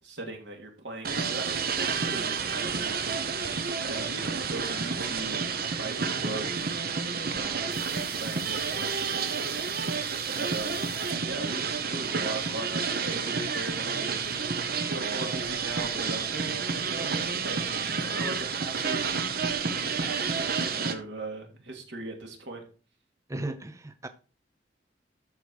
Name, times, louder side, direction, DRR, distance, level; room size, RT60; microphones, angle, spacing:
voice 1, 0.0-3.3 3.8-5.4 5.8-6.8 7.3-9.5 10.3-10.8 11.2-16.3 16.8-17.1 17.4-17.6 18.0-19.0 19.7-22.6, right 2 dB, 85° right, 2.8 m, -39 dB
sound 1, 1.0-20.9, right 5 dB, 60° right, 1.1 m, -30 dB
sound 2, 7.7-11.7, right 4 dB, 35° right, 3.0 m, -47 dB
voice 2, 23.3-24.1, right 2 dB, 20° right, 0.6 m, -35 dB
13.0 x 5.0 x 4.8 m
head